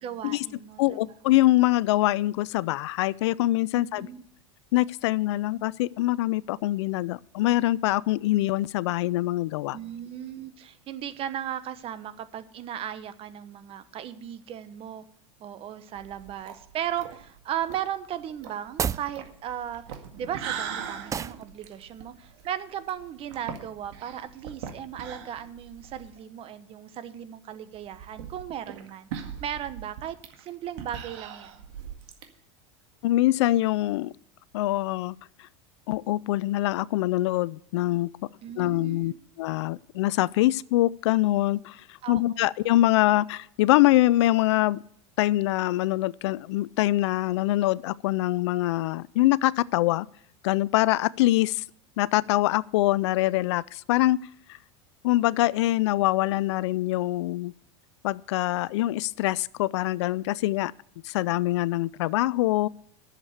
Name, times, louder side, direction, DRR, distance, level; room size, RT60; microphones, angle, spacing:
voice 1, 0.0-1.0 3.7-4.2 9.7-15.0 15.4-19.8 20.2-29.1 29.4-31.5 38.4-39.2 42.0-42.4, right 10 dB, 40° right, 1.2 m, -36 dB
voice 2, 0.8-4.1 4.7-9.8 33.0-34.1 34.5-35.5 35.9-38.1 38.6-44.8 45.2-50.1 50.4-51.6 52.0-54.2 54.5-54.6 55.0-57.5 58.0-60.7 61.0-62.7, left 16 dB, 75° left, 0.4 m, -24 dB
sound 1, 16.0-26.2 26.5-26.6 26.9-27.0 27.7-32.2, right 8 dB, 70° right, 2.0 m, -40 dB
sound 2, 18.7-19.1 21.1-21.4, right 7 dB, 20° right, 0.5 m, -29 dB
11.0 x 7.3 x 8.0 m
hypercardioid pair, 110°, 15 cm